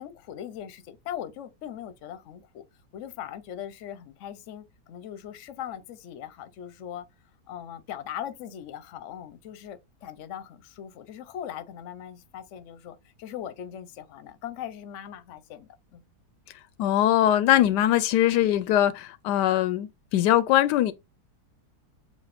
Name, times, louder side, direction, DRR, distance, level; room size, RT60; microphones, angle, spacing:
voice 1, 0.0-2.6 2.9-7.1 7.5-16.0, left 10 dB, 60° left, 0.9 m, -40 dB
voice 2, 16.8-20.9, left 12 dB, 85° left, 1.2 m, -22 dB
7.3 x 2.6 x 2.5 m
omnidirectional pair, 1.8 m